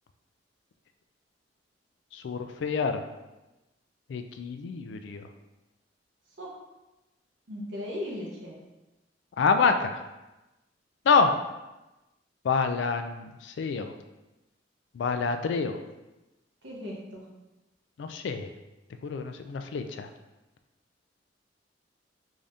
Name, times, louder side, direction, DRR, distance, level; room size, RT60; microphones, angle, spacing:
voice 1, 2.1-3.0 4.1-5.3 9.4-10.0 11.1-11.3 12.4-13.9 14.9-15.8 18.0-18.5 19.0-20.1, left 5 dB, 70° left, 7 dB, 0.3 m, -27 dB
voice 2, 7.5-8.6 16.6-17.3, left 1 dB, 80° right, -3 dB, 1.0 m, -37 dB
3.7 x 2.6 x 3.4 m, 1.0 s
head